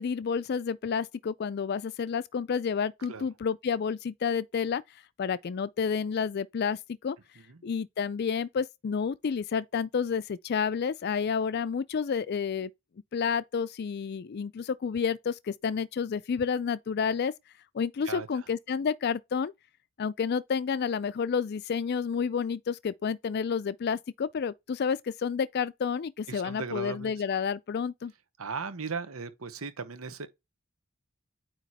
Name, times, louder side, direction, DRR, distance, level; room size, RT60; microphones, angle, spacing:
voice 1, 0.0-4.8 5.2-7.2 7.6-12.7 13.1-17.3 17.7-19.5 20.0-28.1, left 6 dB, 50° left, 0.4 m, -30 dB
voice 2, 18.0-18.4 26.3-27.1 28.4-30.3, right 5 dB, 85° right, 1.0 m, -37 dB
9.1 x 3.0 x 4.1 m
head